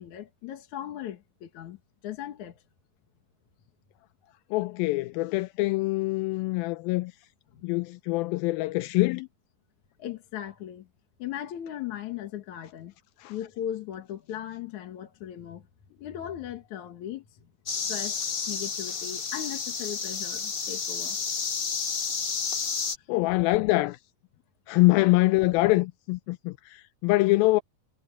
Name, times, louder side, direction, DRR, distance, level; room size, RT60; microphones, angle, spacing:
voice 1, 0.0-2.6 4.2-4.3 7.5-7.7 10.0-10.9 11.2-12.9 13.3-15.7 16.0-17.4 17.7-21.2 23.0-23.1, left 11 dB, 60° left, 2.6 m, -38 dB
voice 2, 4.5-7.1 7.6-9.3 13.2-13.3 23.1-24.0 24.7-27.6, left 20 dB, 85° left, 2.3 m, -24 dB
sound 1, 17.7-23.0, left 6 dB, 40° left, 1.8 m, -31 dB
omnidirectional pair, 4.2 m